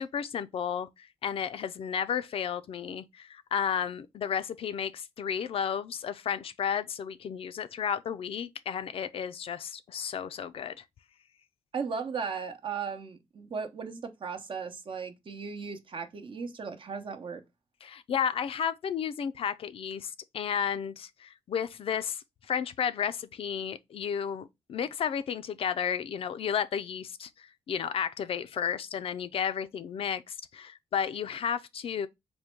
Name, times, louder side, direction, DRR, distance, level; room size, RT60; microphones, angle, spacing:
voice 1, 0.0-10.8 17.8-32.1, left 8 dB, 60° left, 0.4 m, -33 dB
voice 2, 11.7-17.4, right 5 dB, 50° right, 0.7 m, -36 dB
3.5 x 2.2 x 4.4 m
supercardioid pair, 60°, 11 cm